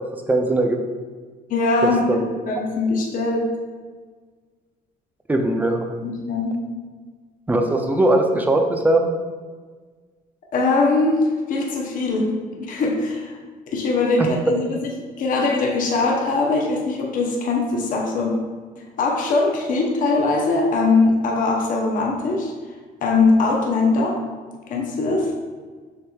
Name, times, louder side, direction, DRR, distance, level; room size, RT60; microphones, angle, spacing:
voice 1, 0.3-0.8 1.8-2.3 5.3-5.9 7.5-9.1 14.2-14.6, right 2 dB, 10° right, 4 dB, 0.4 m, -20 dB
voice 2, 1.5-2.2 2.5-3.5 6.0-6.5 10.5-12.3 12.7-13.3 13.7-14.9 15.2-18.4 19.0-22.5 23.0-24.2 24.7-25.3, left 3 dB, 55° left, -1 dB, 0.8 m, -21 dB
6.4 x 3.0 x 2.3 m, 1.5 s
cardioid pair, 110°, 17 cm